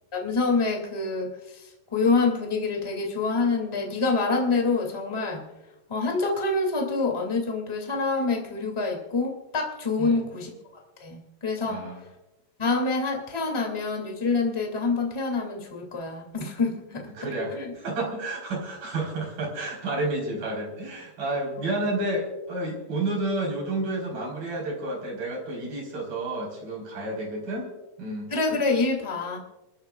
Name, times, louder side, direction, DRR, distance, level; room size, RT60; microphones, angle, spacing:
voice 1, 0.1-5.5 5.9-10.5 11.0-11.9 12.6-17.1 17.6-17.7 28.3-29.4, left 3 dB, 10° left, 1 dB, 1.7 m, -26 dB
voice 2, 11.7-12.0 17.1-27.7 28.0-28.3, right 2 dB, 65° right, -1 dB, 6.0 m, -30 dB
29.5 x 13.5 x 2.4 m, 1.0 s
omnidirectional pair, 4.4 m